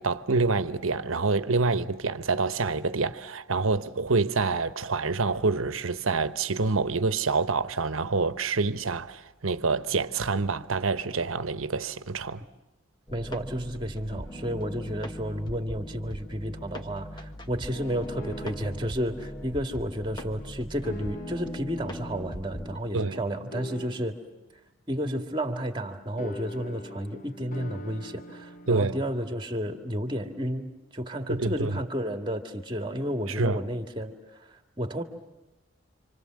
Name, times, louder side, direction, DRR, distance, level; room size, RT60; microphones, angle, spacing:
voice 1, 0.0-12.4 22.9-23.2 28.7-29.0 31.3-31.8 33.3-33.6, right 3 dB, 85° right, 1.1 m, -27 dB
sound 1, 13.1-22.8, equal, 20° left, 1.5 m, -39 dB
voice 2, 13.1-24.2 24.9-35.0, equal, 25° right, 2.2 m, -32 dB
sound 2, 18.2-19.0 20.8-21.6 23.5-24.3 26.2-28.9, left 1 dB, 40° left, 1.3 m, -42 dB
29.0 x 26.5 x 7.7 m
head